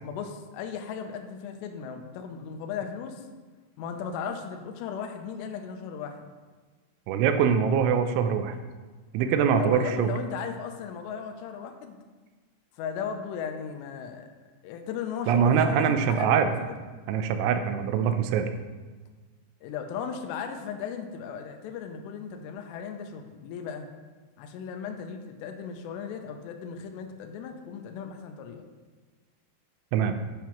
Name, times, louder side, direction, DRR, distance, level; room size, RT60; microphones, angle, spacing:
voice 1, 0.0-3.3 3.8-6.3 9.6-12.0 12.7-14.3 14.6-16.8 19.6-23.9 24.4-28.7, left 7 dB, 80° left, 4 dB, 2.6 m, -36 dB
voice 2, 7.1-8.6 9.1-10.1 15.3-16.5 17.1-18.5 29.9-30.1, right 7 dB, 85° right, 8 dB, 2.9 m, -23 dB
10.0 x 5.7 x 3.0 m, 1.3 s
omnidirectional pair, 5.4 m